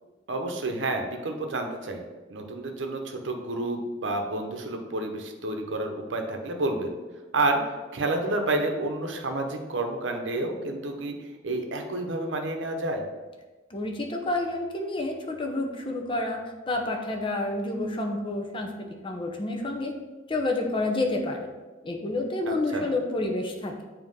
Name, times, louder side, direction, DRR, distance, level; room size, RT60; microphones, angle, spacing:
voice 1, 0.3-2.0 2.3-7.0 7.3-7.6 7.9-11.2 11.4-13.1 22.5-22.9, right 2 dB, 75° right, 4 dB, 0.8 m, -29 dB
voice 2, 13.7-16.4 16.7-18.7 19.0-19.9 20.3-21.5 21.8-23.8, left 2 dB, 25° left, 2 dB, 0.7 m, -29 dB
7.4 x 2.9 x 5.3 m, 1.2 s
head